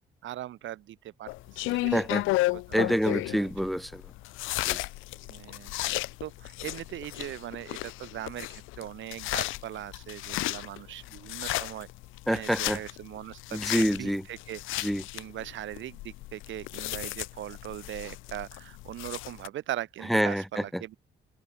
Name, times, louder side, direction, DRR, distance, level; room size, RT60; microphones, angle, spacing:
voice 1, 0.2-1.3 1.6-2.0 2.5-2.8 3.3-3.5 5.3-5.7 6.2-11.9 12.3-14.9 15.1-21.0, right 13 dB, 70° right, 1.0 m, -40 dB
sound 1, 1.3-19.5, left 19 dB, 90° left, 0.4 m, -34 dB
voice 2, 1.7-2.2 2.7-4.0 4.7-4.8 12.3-12.8 13.5-14.2 14.8-15.0 20.1-20.8, equal, ahead, 0.9 m, -27 dB
cardioid pair, 90°, 20 cm